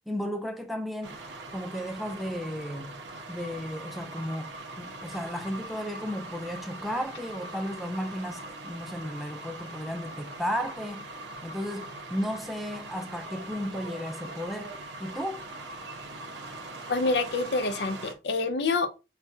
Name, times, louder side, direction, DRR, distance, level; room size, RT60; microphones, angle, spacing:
voice 1, 0.1-1.2 1.5-3.0 3.3-11.1 11.4-15.4, equal, ahead, 0.4 m, -34 dB
sound 1, 1.0-18.1, right 2 dB, 85° right, 0.8 m, -42 dB
voice 2, 16.9-19.0, left 3 dB, 75° left, 0.6 m, -27 dB
5.9 x 2.2 x 2.7 m
head